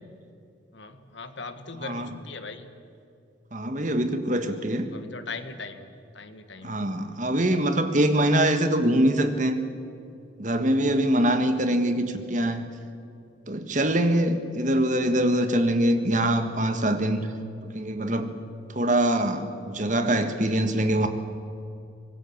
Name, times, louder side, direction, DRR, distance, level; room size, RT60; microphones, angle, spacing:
voice 1, 0.7-2.7 4.4-6.9, left 4 dB, 70° left, 9 dB, 1.7 m, -40 dB
voice 2, 3.5-4.9 6.6-9.6 10.4-12.7 13.5-17.3 17.7-18.3 18.7-21.1, right 1 dB, 40° right, 8 dB, 1.6 m, -23 dB
24.5 x 21.0 x 7.3 m, 2.5 s
head